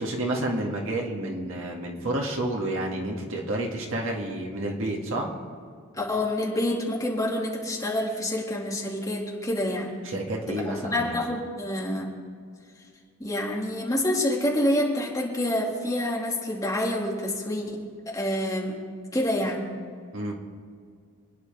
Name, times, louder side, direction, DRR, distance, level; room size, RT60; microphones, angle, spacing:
voice 1, 0.0-5.3 10.0-11.2 20.1-20.3, right 1 dB, 60° right, -1 dB, 2.1 m, -30 dB
voice 2, 5.9-10.0 10.5-12.1 13.2-18.8 19.1-19.6, left 1 dB, 15° left, -3 dB, 2.2 m, -27 dB
26.5 x 9.9 x 3.5 m, 2.1 s
head